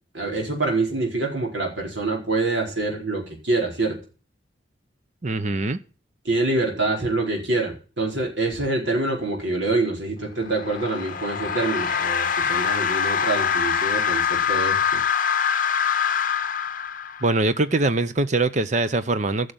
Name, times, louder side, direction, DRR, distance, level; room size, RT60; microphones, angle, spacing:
voice 1, 0.1-4.0 6.2-15.0, right 2 dB, 70° right, 4.6 m, -25 dB
voice 2, 5.2-5.8 17.2-19.5, right 2 dB, 40° right, 0.7 m, -22 dB
sound 1, 10.4-17.5, left 7 dB, 45° left, 0.8 m, -24 dB
13.0 x 6.6 x 8.7 m
head